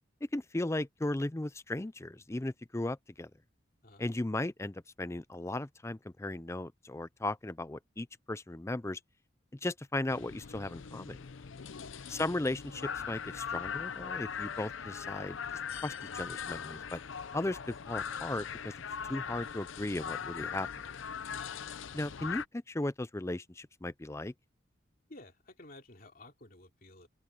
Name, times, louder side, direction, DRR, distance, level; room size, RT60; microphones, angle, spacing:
voice 1, 0.3-3.3 4.0-9.0 9.5-11.2 12.1-15.4 15.7-17.0 17.3-18.7 19.1-20.7 21.9-24.3, left 2 dB, 15° left, 0.5 m, -36 dB
sound 1, 10.1-22.5, left 7 dB, 75° left, 0.6 m, -40 dB
voice 2, 25.1-27.1, left 2 dB, 45° left, 2.9 m, -53 dB
open air
head